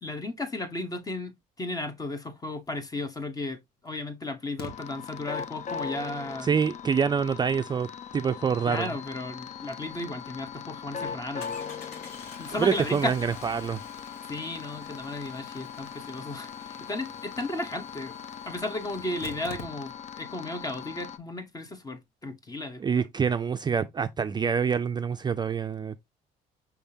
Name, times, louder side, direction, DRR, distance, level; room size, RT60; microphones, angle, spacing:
voice 1, 0.0-6.5 8.7-11.6 12.4-13.1 14.2-18.1 18.4-23.0, left 2 dB, 20° left, 0.9 m, -35 dB
Engine starting, 3.1-3.2 4.6-4.7 9.8-9.9 10.2-10.3 11.4-20.2 20.5-20.6 20.8-20.9, left 4 dB, 70° left, 1.5 m, -47 dB
sound 1, 4.6-21.2, left 7 dB, 45° left, 0.6 m, -40 dB
voice 2, 6.4-7.9 8.1-8.9 12.6-13.8 22.8-26.1, right 6 dB, 25° right, 0.4 m, -26 dB
5.7 x 3.4 x 2.7 m
cardioid pair, 110°, 17 cm